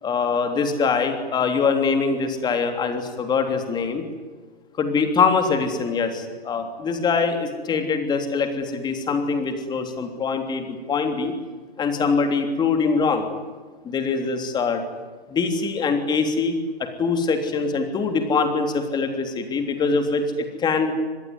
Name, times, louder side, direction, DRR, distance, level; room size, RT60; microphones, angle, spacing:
voice 1, 0.0-4.0 4.8-11.4 11.8-13.3 13.8-14.8 15.3-20.9, left 4 dB, 15° left, 6 dB, 3.3 m, -23 dB
25.0 x 21.5 x 9.7 m, 1.4 s
hypercardioid pair, 140°, 30 cm